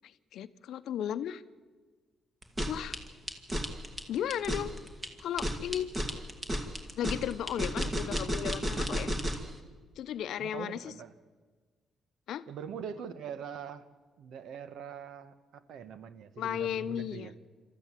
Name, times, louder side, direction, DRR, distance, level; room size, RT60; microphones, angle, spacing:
voice 1, 0.0-1.4 2.7-3.0 4.1-4.7 5.2-5.9 7.0-9.1 10.0-10.9 12.3-12.4 16.4-17.3, left 10 dB, 75° left, 13 dB, 0.7 m, -35 dB
sound 1, 2.4-9.5, equal, 20° right, 2.2 m, -33 dB
voice 2, 10.4-11.1 12.5-13.9 14.2-17.3, right 7 dB, 75° right, 13 dB, 1.2 m, -43 dB
27.0 x 13.5 x 7.5 m, 1.5 s
cardioid pair, 90°, 0 cm